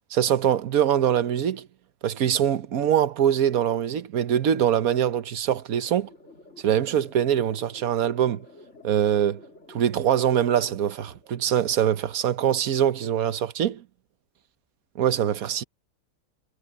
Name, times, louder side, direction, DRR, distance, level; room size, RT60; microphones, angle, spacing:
voice 1, 0.1-1.7 2.0-6.1 6.6-8.4 8.8-9.4 9.7-13.8 15.0-15.6, right 10 dB, 80° right, 1.4 m, -23 dB
sound 1, 5.8-11.8, left 2 dB, 55° left, 3.5 m, -51 dB
omnidirectional pair, 1.5 m